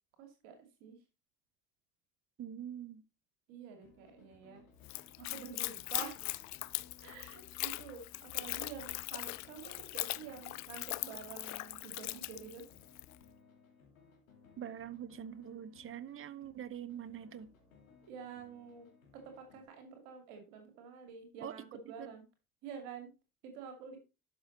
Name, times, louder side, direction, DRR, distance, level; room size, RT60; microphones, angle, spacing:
voice 1, 0.2-0.6 0.8-1.0 3.5-4.6 5.2-6.3 7.0-12.6 18.0-22.2 22.6-23.1 23.4-24.0, right 6 dB, 60° right, 2.5 m, -48 dB
voice 2, 2.4-3.0 14.6-17.5 21.4-21.7 22.0-22.1 23.9-24.0, right 9 dB, 30° right, 0.9 m, -44 dB
sound 1, 3.8-19.7, left 5 dB, 80° left, 2.6 m, -62 dB
Splash splatter / Trickle dribble, 4.8-13.2, left 20 dB, 45° left, 0.5 m, -40 dB
12.0 x 6.1 x 4.0 m
figure-of-eight pair, 55°, 40 cm